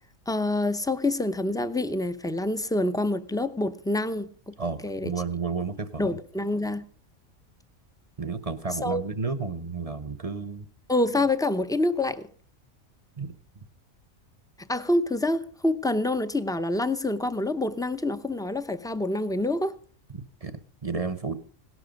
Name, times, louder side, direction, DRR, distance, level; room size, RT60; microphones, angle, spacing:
voice 1, 0.3-4.5 4.8-5.1 6.0-6.8 8.8-9.0 10.9-12.3 14.7-19.8, left 2 dB, 5° left, 0.5 m, -27 dB
voice 2, 4.6-6.1 8.2-10.6 13.2-13.4 20.1-21.3, right 4 dB, 30° right, 0.8 m, -32 dB
17.5 x 12.5 x 5.2 m
omnidirectional pair, 1.4 m